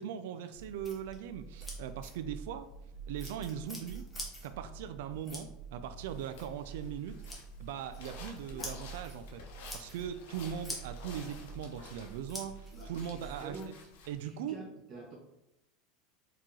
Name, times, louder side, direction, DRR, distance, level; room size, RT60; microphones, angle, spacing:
voice 1, 0.0-2.7 3.1-4.0 4.4-7.2 7.6-9.4 9.7-13.7 14.1-14.6, right 9 dB, 75° right, 9 dB, 0.3 m, -40 dB
sound 1, 0.5-13.5, right 2 dB, 5° left, 0.9 m, -46 dB
sound 2, 6.0-14.2, left 4 dB, 85° left, 1.0 m, -52 dB
voice 2, 12.7-13.7 14.2-15.2, right 3 dB, 35° right, -2 dB, 1.2 m, -47 dB
4.7 x 2.9 x 3.8 m, 0.85 s
supercardioid pair, 175°, 0 cm